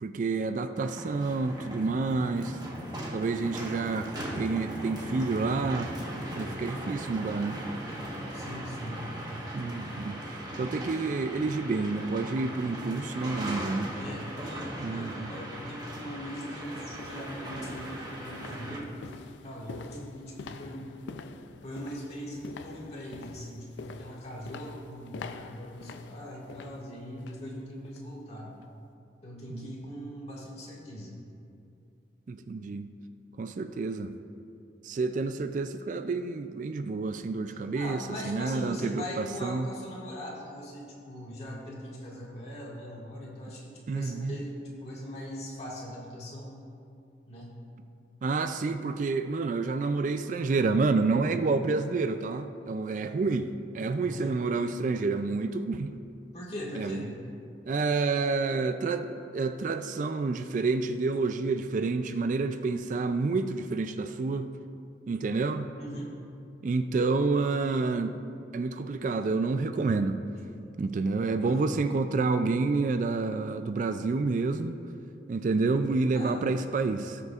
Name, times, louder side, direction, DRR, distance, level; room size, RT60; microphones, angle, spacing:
voice 1, 0.0-2.6 3.1-4.1 4.4-5.9 6.4-7.6 9.5-13.9 14.8-15.3 29.5-29.7 32.3-32.9 33.4-34.1 34.8-39.7 43.9-44.4 48.2-56.0 56.7-57.1 57.7-64.5 65.1-65.7 66.6-68.1 68.5-70.2 70.8-74.8 75.3-77.2, right 3 dB, 45° right, 9 dB, 0.3 m, -29 dB
sound 1, 0.8-18.8, right 1 dB, 20° right, 1.2 m, -38 dB
voice 2, 8.3-9.1 14.0-19.0 19.4-21.0 21.6-28.5 29.2-31.1 37.5-46.5 47.3-47.5 54.0-54.4 56.3-57.1 65.8-66.1 71.4-71.8 76.1-76.4, equal, 35° left, -4 dB, 1.9 m, -41 dB
sound 2, 15.5-15.6 16.2-27.5 27.8-28.1 28.5-28.6, left 4 dB, 80° left, 0.4 m, -46 dB
17.5 x 6.7 x 2.4 m, 2.5 s
head